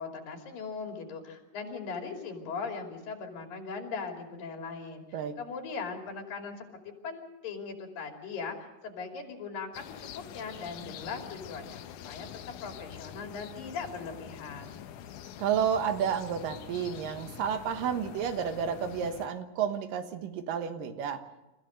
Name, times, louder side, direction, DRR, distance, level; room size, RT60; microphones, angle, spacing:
voice 1, 0.0-5.0 5.4-12.3 12.6-14.8, left 5 dB, 90° left, 3 dB, 4.5 m, -39 dB
sound 1, 9.7-19.3, left 9 dB, 70° left, 2.3 m, -45 dB
voice 2, 15.4-21.2, right 8 dB, 80° right, 8 dB, 3.0 m, -31 dB
28.5 x 15.0 x 6.6 m, 1.1 s
omnidirectional pair, 3.9 m